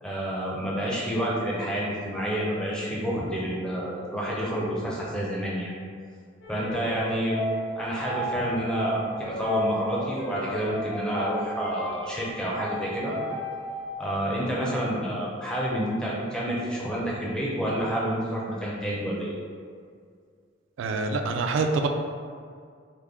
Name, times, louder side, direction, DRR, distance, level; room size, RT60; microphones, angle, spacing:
voice 1, 0.0-5.7 6.5-7.4 7.8-13.1 14.0-19.3, equal, 5° left, -6 dB, 0.5 m, -29 dB
sound 1, 6.4-13.9, left 1 dB, 60° left, 0.8 m, -34 dB
voice 2, 20.8-21.9, right 3 dB, 75° right, 5 dB, 0.3 m, -25 dB
3.4 x 2.1 x 3.4 m, 2.1 s
head